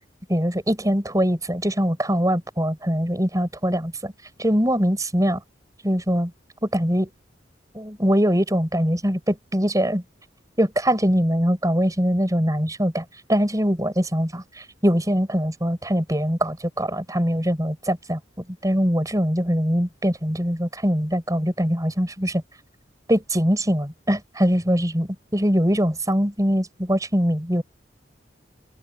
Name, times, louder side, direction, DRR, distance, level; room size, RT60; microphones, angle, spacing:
voice 1, 0.3-4.1 4.4-5.4 5.8-6.3 6.6-7.1 7.7-10.0 10.6-18.2 18.6-22.4 23.1-27.6, equal, 20° right, 6.2 m, -22 dB
head